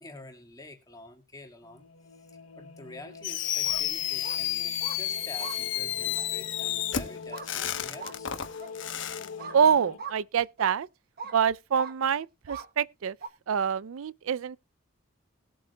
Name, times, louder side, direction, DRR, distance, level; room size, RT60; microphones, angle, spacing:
voice 1, 0.0-8.3, left 2 dB, 15° left, 2.0 m, -48 dB
sound 1, 1.6-10.0, left 5 dB, 85° left, 0.9 m, -45 dB
Fireworks, 3.2-9.3, left 11 dB, 60° left, 1.0 m, -31 dB
sound 2, 3.5-3.8 4.2-4.4 4.8-5.0 5.4-5.6 6.2-6.3 7.3-7.5 8.0-8.2 8.6-8.7 9.4-9.6 10.0-10.2 10.6-10.8 11.2-11.4 11.8-11.9 12.5-12.7 13.2-13.3, right 5 dB, 45° right, 1.0 m, -40 dB
voice 2, 9.5-10.9 11.3-13.2 13.5-14.6, right 7 dB, 80° right, 0.4 m, -26 dB
20.0 x 7.7 x 2.2 m
head